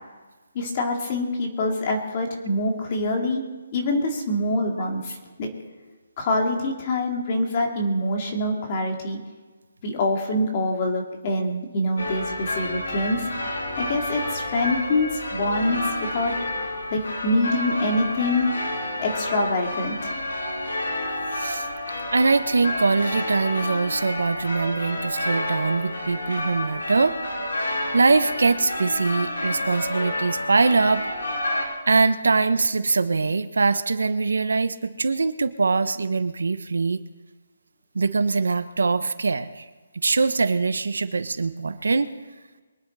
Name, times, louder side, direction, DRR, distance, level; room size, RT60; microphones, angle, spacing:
voice 1, 0.5-3.4 3.7-5.5 6.2-9.2 9.8-13.3 13.8-16.3 16.6-20.1, left 1 dB, 25° left, 1 dB, 2.2 m, -25 dB
sound 1, 12.0-31.6, left 1 dB, 75° left, 5.8 m, -30 dB
voice 2, 21.4-21.7 22.1-27.1 27.9-31.1 31.9-37.0 37.9-39.6 39.9-42.1, right 4 dB, 85° right, 11 dB, 1.1 m, -22 dB
23.5 x 10.0 x 4.2 m, 1.3 s
hypercardioid pair, 175°, 0 cm